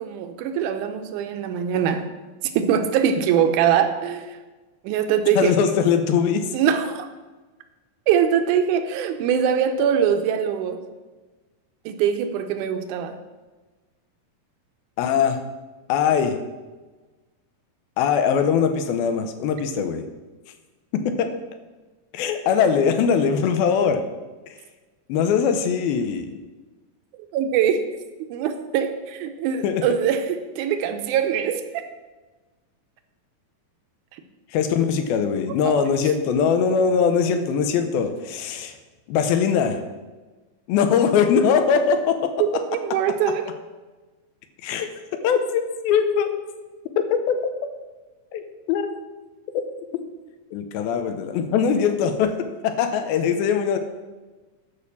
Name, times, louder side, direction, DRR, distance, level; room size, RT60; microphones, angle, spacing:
voice 1, 0.0-2.1 2.6-4.4 4.8-5.7 6.5-7.1 8.1-10.8 11.9-13.2 27.3-27.9 28.3-31.8 35.6-35.7 42.4-43.5, right 8 dB, 75° right, 7 dB, 1.9 m, -22 dB
voice 2, 5.4-6.5 15.0-15.4 15.9-16.4 18.0-20.0 20.9-21.3 22.1-24.0 24.5-24.6 25.1-26.4 29.6-29.8 34.5-38.7 39.1-39.8 40.7-42.3 44.6-46.3 47.0-47.4 48.3-48.4 48.7-48.9 49.9-50.0 50.5-53.8, left 7 dB, 85° left, 8 dB, 2.7 m, -21 dB
11.0 x 5.2 x 7.1 m, 1.2 s
omnidirectional pair, 4.2 m